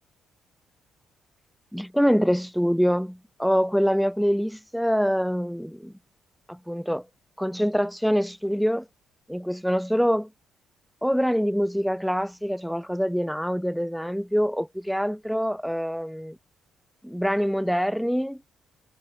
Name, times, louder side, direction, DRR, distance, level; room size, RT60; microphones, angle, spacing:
voice 1, 1.7-5.9 6.5-7.1 7.4-8.9 9.3-10.3 11.0-16.4 17.0-18.4, equal, ahead, 2.2 m, -25 dB
cardioid pair, 90°, 0 cm